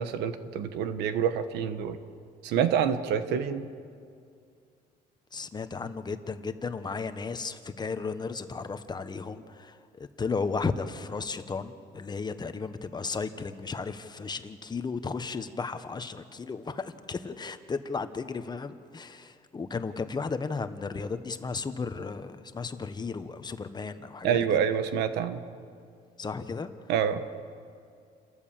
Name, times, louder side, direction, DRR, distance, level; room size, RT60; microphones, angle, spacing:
voice 1, 0.0-2.0 2.4-3.7 24.2-25.4 26.9-27.2, right 8 dB, 85° right, 10 dB, 1.4 m, -27 dB
voice 2, 5.3-24.6 26.2-26.7, left 4 dB, 25° left, 9 dB, 1.2 m, -34 dB
29.0 x 13.5 x 7.5 m, 2.3 s
cardioid pair, 110°, 17 cm